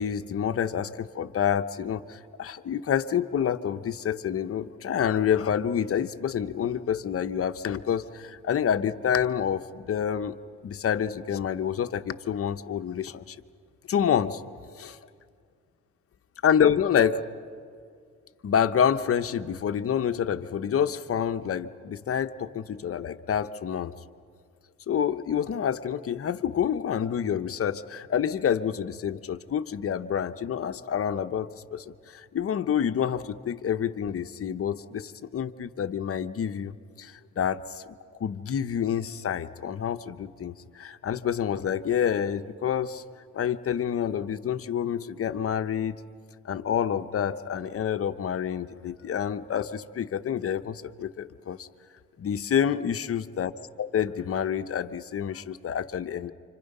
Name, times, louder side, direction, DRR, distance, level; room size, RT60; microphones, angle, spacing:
voice 1, 0.0-10.4 10.6-13.4 13.9-14.4 14.7-14.9 16.4-17.3 18.4-23.9 24.9-37.8 38.2-43.0 43.3-46.0 46.4-51.7 52.2-56.3, left 8 dB, 50° left, 10 dB, 1.0 m, -28 dB
29.0 x 26.5 x 5.5 m, 2.2 s
cardioid pair, 90°, 30 cm